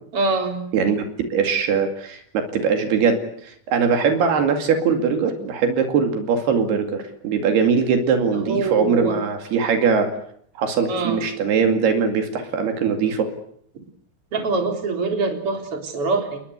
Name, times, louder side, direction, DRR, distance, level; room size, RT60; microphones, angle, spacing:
voice 1, 0.1-0.6 8.3-9.2 10.9-11.2 14.3-16.4, right 3 dB, 35° right, 5 dB, 4.5 m, -24 dB
voice 2, 0.7-1.0 1.3-10.1 10.6-13.3, right 6 dB, 75° right, 6 dB, 4.3 m, -21 dB
30.0 x 20.5 x 8.2 m, 0.66 s
omnidirectional pair, 4.7 m